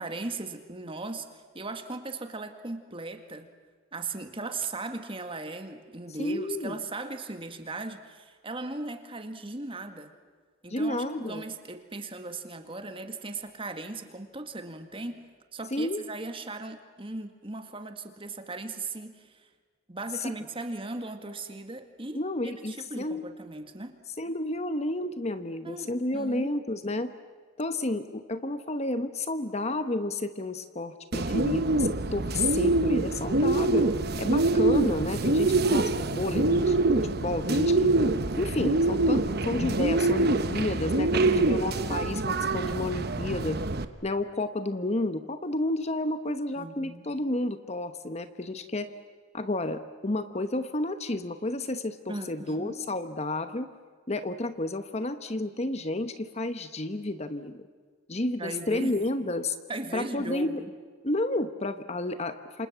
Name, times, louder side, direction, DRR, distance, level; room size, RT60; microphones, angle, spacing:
voice 1, 0.0-3.5 3.9-10.1 10.6-15.3 15.5-19.4 19.9-24.0 25.6-26.5 41.2-42.0 46.6-47.0 52.1-52.8 58.4-59.0 59.7-60.7, right 2 dB, 25° right, 7 dB, 2.0 m, -38 dB
voice 2, 6.2-6.8 10.7-11.4 15.7-16.0 20.2-20.4 22.1-23.2 24.2-27.1 27.6-33.9 34.2-36.8 37.0-37.9 38.4-43.6 44.0-48.9 49.3-53.7 54.1-57.6 58.1-59.6 59.9-60.6 61.0-62.7, left 2 dB, 35° left, 10 dB, 1.1 m, -31 dB
Bird, 31.1-43.8, right 2 dB, 50° right, 1.1 m, -25 dB
28.5 x 26.5 x 7.4 m, 1.5 s
head